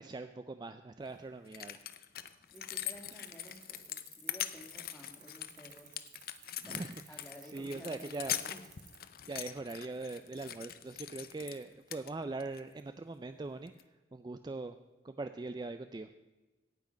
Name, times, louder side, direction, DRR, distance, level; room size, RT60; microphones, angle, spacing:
voice 1, 0.0-1.8 6.6-8.3 9.3-13.7 14.1-14.8 15.0-16.1, right 3 dB, 25° right, 10 dB, 0.3 m, -41 dB
sound 1, 1.1-1.2 1.5-11.6 11.9-12.6 13.7-13.8, left 12 dB, 55° left, 0.6 m, -42 dB
voice 2, 2.5-6.0 6.7-6.8 7.1-8.6, left 1 dB, 10° left, 1 dB, 1.8 m, -53 dB
sound 2, 2.5-9.0, right 10 dB, 45° right, 1.6 m, -56 dB
17.0 x 6.0 x 5.1 m, 1.2 s
head